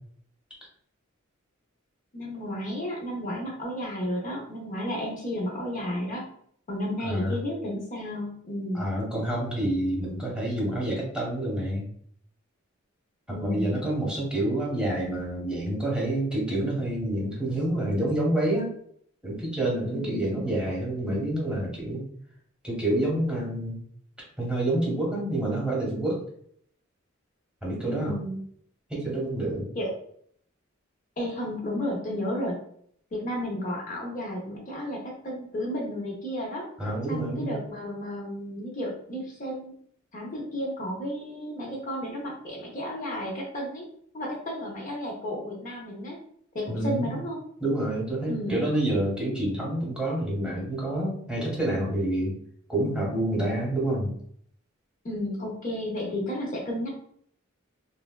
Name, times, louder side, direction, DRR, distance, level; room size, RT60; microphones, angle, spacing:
voice 1, 2.1-6.2 6.7-8.8 13.3-13.8 19.9-20.4 27.8-28.4 29.8-30.0 31.2-32.6 33.1-36.6 37.1-39.7 40.1-43.8 44.1-46.1 46.5-47.4 48.3-48.7 55.0-56.9, equal, 40° left, -2 dB, 0.6 m, -32 dB
voice 2, 7.0-7.4 8.7-11.8 13.3-18.7 19.2-22.0 22.6-23.8 24.4-26.2 27.6-28.1 28.9-29.7 36.8-37.6 46.7-47.1 47.6-52.4 52.7-54.1, right 1 dB, 5° right, -4 dB, 0.8 m, -28 dB
3.2 x 2.2 x 2.2 m, 0.64 s
head